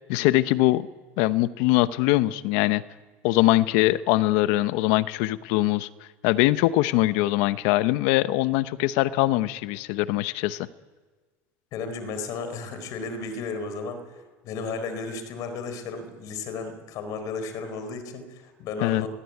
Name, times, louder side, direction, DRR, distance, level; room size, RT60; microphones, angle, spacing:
voice 1, 0.1-0.9 1.2-2.8 3.2-5.9 6.2-10.7 18.8-19.1, left 17 dB, 75° left, 14 dB, 0.9 m, -22 dB
voice 2, 11.7-14.1 14.4-19.1, left 4 dB, 60° left, 9 dB, 4.5 m, -34 dB
22.0 x 17.0 x 9.4 m, 1.4 s
supercardioid pair, 115°, 7 cm